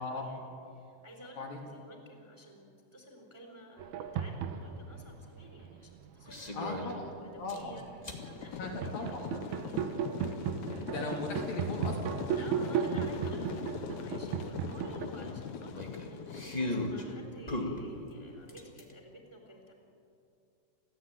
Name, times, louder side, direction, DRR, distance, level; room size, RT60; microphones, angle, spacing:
voice 1, 0.0-7.8 8.1-9.8 12.3-19.7, equal, 5° right, 1 dB, 3.8 m, -52 dB
sound 1, 3.8-5.0 6.0-7.1 7.6-15.1, right 7 dB, 70° right, 2.8 m, -36 dB
sound 2, 6.2-6.9 7.5-8.2 9.7-9.8 12.5-12.6 12.8-12.9 13.4-13.5 15.2-17.0 17.5-18.9, left 2 dB, 30° left, 0.6 m, -37 dB
voice 2, 6.5-7.8 8.6-9.2 10.9-13.4, left 2 dB, 60° left, -1 dB, 3.9 m, -39 dB
sound 3, 8.1-17.2, left 7 dB, 85° left, 1.6 m, -42 dB
30.0 x 14.0 x 9.1 m, 2.6 s
omnidirectional pair, 4.9 m